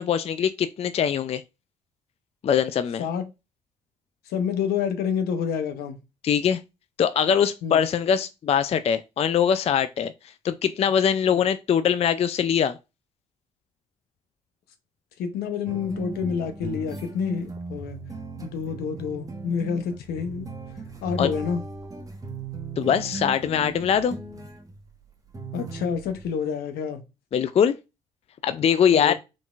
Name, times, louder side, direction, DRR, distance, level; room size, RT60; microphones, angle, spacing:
voice 1, 0.0-1.4 2.4-3.1 6.2-6.6 7.0-10.1 10.4-12.8 21.2-21.3 22.8-24.2 27.3-27.8 28.4-29.1, left 8 dB, 40° left, 0.4 m, -22 dB
voice 2, 4.3-6.0 7.6-7.8 11.3-11.4 15.2-18.0 18.4-20.5 21.0-21.6 25.5-27.0 28.9-29.1, left 7 dB, 70° left, 0.8 m, -28 dB
sound 1, 15.7-24.9 25.3-26.3, right 3 dB, 20° right, 1.2 m, -37 dB
3.9 x 3.6 x 2.4 m
hypercardioid pair, 55°, 17 cm